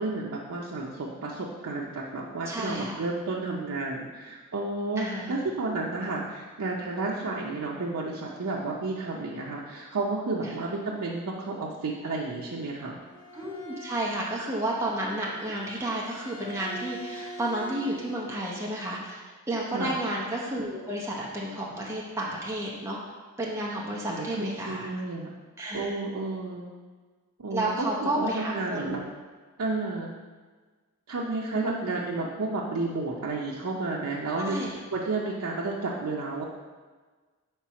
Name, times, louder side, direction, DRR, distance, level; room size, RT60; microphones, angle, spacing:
voice 1, 0.0-13.0 19.7-19.9 24.1-25.3 25.7-26.7 27.4-29.0 29.6-30.2 31.1-36.5, right 3 dB, 85° right, -3 dB, 0.6 m, -31 dB
voice 2, 2.5-3.0 5.0-5.4 13.3-19.2 19.5-24.9 25.6-25.9 27.5-29.0 31.5-32.0 34.3-34.8, right 1 dB, 10° right, -5 dB, 0.7 m, -31 dB
Bowed string instrument, 12.8-18.3, equal, 75° left, 1.1 m, -44 dB
4.5 x 4.1 x 5.7 m, 1.4 s
head